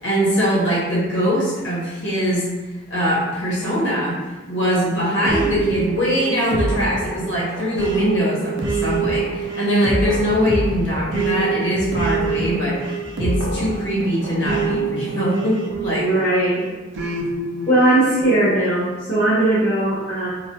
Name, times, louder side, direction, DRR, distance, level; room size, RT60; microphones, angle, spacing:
voice 1, 0.0-2.4 2.9-4.2 4.5-12.8 13.2-16.1, equal, 80° left, -7 dB, 0.9 m, -22 dB
sound 1, 5.2-16.3 16.9-18.5, right 3 dB, 75° right, 0.4 m, -25 dB
voice 2, 15.9-16.7 17.7-20.3, right 1 dB, 40° left, -13 dB, 0.8 m, -18 dB
2.3 x 2.2 x 2.8 m, 1.2 s
head